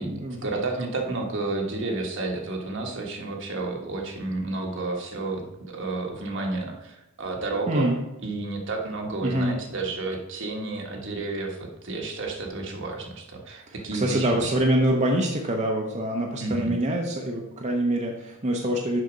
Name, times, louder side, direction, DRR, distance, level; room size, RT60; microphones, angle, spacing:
voice 1, 0.0-14.4 16.4-16.8, right 2 dB, 65° right, 1 dB, 1.4 m, -31 dB
voice 2, 9.2-9.5 13.7-19.0, right 1 dB, 35° right, 1 dB, 0.8 m, -25 dB
6.6 x 5.8 x 5.1 m, 0.92 s
head